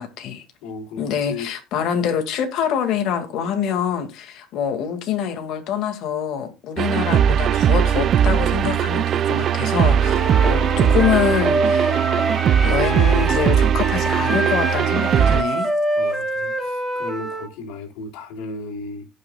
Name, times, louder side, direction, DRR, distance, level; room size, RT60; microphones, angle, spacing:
voice 1, 0.0-0.4 1.0-12.3 12.6-15.7, left 8 dB, 60° left, 2.3 m, -25 dB
voice 2, 0.6-1.5 15.9-19.1, left 3 dB, 80° left, 3.3 m, -35 dB
sound 1, 6.8-15.4, right 9 dB, 45° right, 0.4 m, -19 dB
Wind instrument woodwind instrument, 10.0-17.5, right 1 dB, ahead, 3.0 m, -25 dB
17.5 x 6.0 x 2.4 m
cardioid pair, 125°, 0 cm